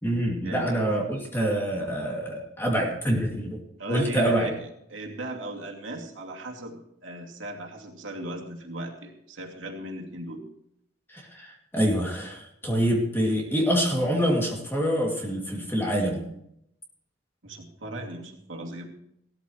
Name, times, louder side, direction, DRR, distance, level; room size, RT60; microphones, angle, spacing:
voice 1, 0.0-3.6 3.9-4.5 11.1-16.2, equal, 10° left, -1 dB, 2.6 m, -26 dB
voice 2, 3.8-10.4 17.4-18.9, right 1 dB, 85° right, 0 dB, 2.6 m, -37 dB
17.0 x 13.5 x 3.2 m, 0.76 s
head